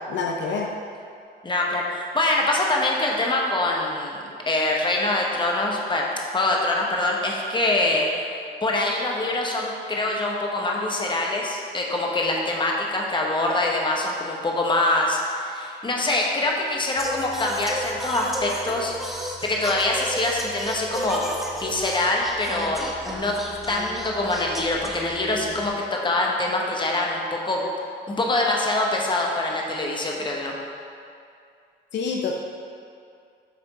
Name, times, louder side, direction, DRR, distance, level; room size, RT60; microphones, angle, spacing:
voice 1, 0.1-0.7 31.9-32.3, left 5 dB, 65° left, 1 dB, 0.6 m, -26 dB
voice 2, 1.4-6.0 6.3-8.1 8.6-18.9 19.4-21.2 21.5-23.4 23.7-27.6 28.1-30.5, left 2 dB, 25° left, -1 dB, 1.0 m, -24 dB
Singing, 17.0-25.7, equal, ahead, 0.9 m, -33 dB
8.4 x 3.3 x 4.1 m, 2.4 s
cardioid pair, 90°, 20 cm